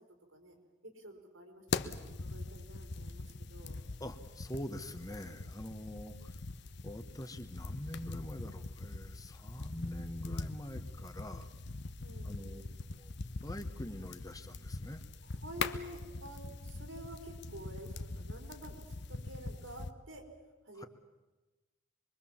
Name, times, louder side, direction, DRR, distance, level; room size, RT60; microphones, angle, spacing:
voice 1, 0.8-3.8 12.0-12.8 15.2-18.8 19.1-20.3 20.6-20.9, right 1 dB, 80° right, 4 dB, 4.8 m, -50 dB
sound 1, 1.7-19.9, left 3 dB, 55° left, 1.0 m, -42 dB
voice 2, 4.0-6.4 6.8-11.5 12.2-12.6 13.0-13.1 13.4-15.0 20.7-20.9, left 1 dB, 15° left, 8 dB, 1.1 m, -44 dB
25.5 x 22.5 x 7.3 m, 1.2 s
head